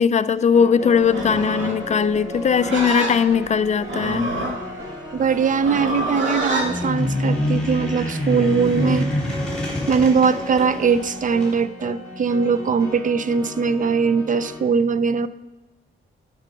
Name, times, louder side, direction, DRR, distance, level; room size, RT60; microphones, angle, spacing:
voice 1, 0.0-4.3, left 6 dB, 35° left, 13 dB, 0.4 m, -19 dB
sound 1, 0.5-14.6, left 1 dB, 15° right, 1.8 m, -36 dB
Livestock farm animals working animals, 1.0-6.7, right 1 dB, 65° right, 1.9 m, -27 dB
voice 2, 5.1-9.1 9.9-15.3, right 5 dB, 40° right, 15 dB, 0.4 m, -21 dB
sound 2, 6.6-11.6, left 1 dB, 5° left, 3.1 m, -26 dB
11.5 x 5.3 x 5.3 m, 1.1 s
wide cardioid pair, 110°, 21 cm